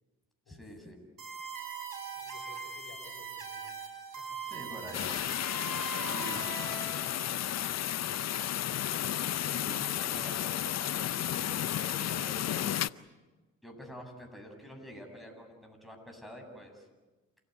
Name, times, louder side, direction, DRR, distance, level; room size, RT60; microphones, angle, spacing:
voice 1, 0.5-1.0 4.5-5.2 6.0-6.4 9.2-10.8 11.3-12.8 13.6-16.9, equal, ahead, 1 dB, 8.0 m, -47 dB
sound 1, 1.2-7.1, right 6 dB, 65° right, 5.7 m, -41 dB
voice 2, 2.1-4.6 6.1-6.3 6.6-8.2, left 5 dB, 70° left, 5 dB, 5.5 m, -57 dB
sound 2, 4.9-12.9, left 11 dB, 45° left, 0.7 m, -32 dB
28.0 x 15.5 x 9.6 m, 1.2 s
hypercardioid pair, 50°, 36 cm